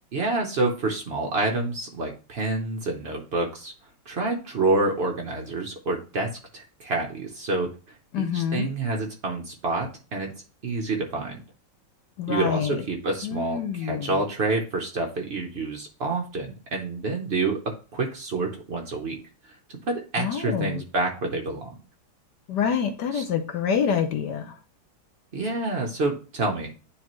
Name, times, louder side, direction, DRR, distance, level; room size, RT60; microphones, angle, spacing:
voice 1, 0.1-3.7 4.1-7.7 8.2-10.3 10.6-11.4 12.3-19.2 19.4-21.7 23.1-23.2 25.3-26.7, right 3 dB, 65° right, 1 dB, 0.6 m, -28 dB
voice 2, 8.1-8.7 12.2-12.8 13.2-14.1 20.2-20.8 22.5-24.5, left 7 dB, 65° left, 7 dB, 1.2 m, -26 dB
9.7 x 3.2 x 3.0 m, 0.35 s
omnidirectional pair, 2.2 m